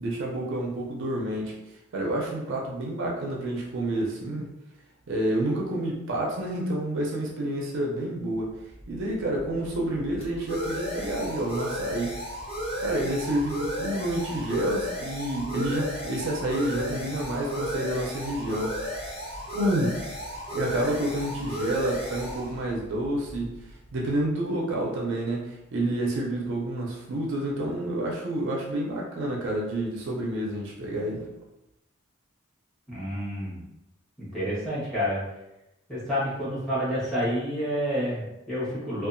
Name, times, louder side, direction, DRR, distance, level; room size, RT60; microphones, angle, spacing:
voice 1, 0.0-1.5 1.9-4.5 5.1-8.5 8.9-12.2 12.8-19.0 19.5-20.1 20.5-23.6 23.9-31.3, right 1 dB, 60° right, -2 dB, 0.5 m, -29 dB
sound 1, 8.6-24.0, equal, 25° left, 0.9 m, -34 dB
voice 2, 32.9-33.6 34.2-35.2 35.9-39.1, equal, ahead, -9 dB, 1.1 m, -29 dB
2.7 x 2.3 x 2.5 m, 0.91 s
head